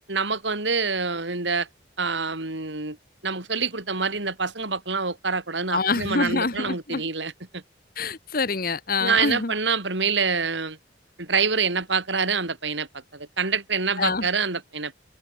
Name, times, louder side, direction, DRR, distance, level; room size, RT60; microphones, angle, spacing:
voice 1, 0.1-1.7 2.0-3.0 3.2-7.6 9.0-10.8 11.2-12.9 13.1-15.0, right 5 dB, 75° right, 3.7 m, -26 dB
voice 2, 5.7-7.0 8.0-9.5 14.0-14.3, left 4 dB, 50° left, 1.3 m, -26 dB
open air
head